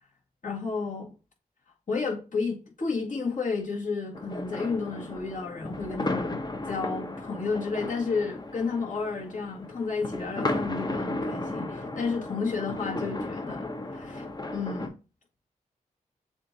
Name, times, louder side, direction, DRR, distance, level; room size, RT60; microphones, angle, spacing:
voice 1, 0.4-1.1 1.9-6.4 6.7-14.2 14.5-14.9, left 4 dB, 55° left, 1.9 m, -32 dB
sound 1, 4.1-14.9, left 2 dB, 25° left, 0.8 m, -34 dB
7.1 x 2.6 x 2.8 m
supercardioid pair, 45°, 16 cm